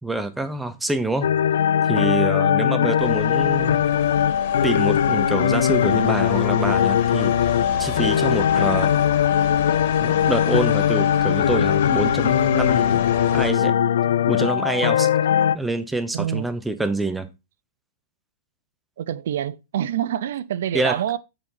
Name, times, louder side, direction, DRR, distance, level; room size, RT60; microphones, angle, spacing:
voice 1, 0.0-1.3 1.9-3.8 4.6-7.3 7.8-8.9 10.0-13.0 13.3-13.7 14.3-15.1 15.5-17.3 20.7-21.0, right 2 dB, 5° right, 0.9 m, -26 dB
sound 1, 1.2-15.6, left 9 dB, 85° left, 0.5 m, -20 dB
voice 2, 2.4-2.7 8.1-8.4 16.1-16.4 19.0-21.2, right 10 dB, 70° right, 0.7 m, -27 dB
sound 2, 3.0-13.5, left 7 dB, 50° left, 2.5 m, -33 dB
8.0 x 4.2 x 5.5 m
supercardioid pair, 155°, 0 cm